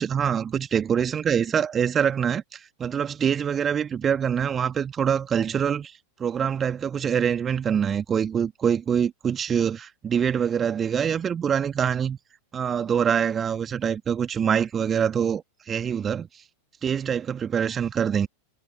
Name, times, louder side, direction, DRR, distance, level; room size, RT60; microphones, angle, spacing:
voice 1, 0.0-5.9 6.2-12.2 12.5-16.3 16.8-18.3, right 8 dB, 20° right, 2.1 m, -25 dB
figure-of-eight pair, 90°, 0 cm